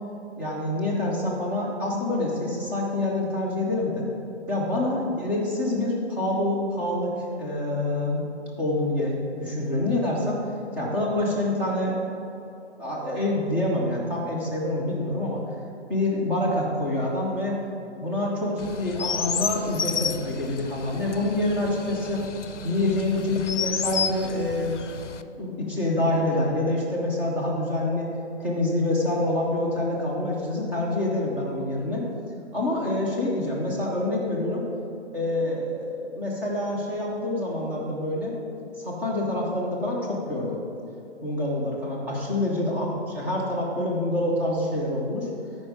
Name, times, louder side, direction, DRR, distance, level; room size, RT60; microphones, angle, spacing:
voice 1, 0.4-4.0 4.5-8.3 8.6-10.4 10.8-12.0 12.8-15.4 15.9-17.6 18.0-22.2 22.6-24.8 25.4-28.1 28.4-32.0 32.5-34.6 35.1-38.3 38.8-40.6 41.2-45.3, left 1 dB, 5° right, -4 dB, 0.6 m, -26 dB
Chirp tweet, 18.6-25.2, left 6 dB, 90° left, 0.7 m, -32 dB
13.5 x 5.2 x 5.0 m, 2.8 s
hypercardioid pair, 150°, 35 cm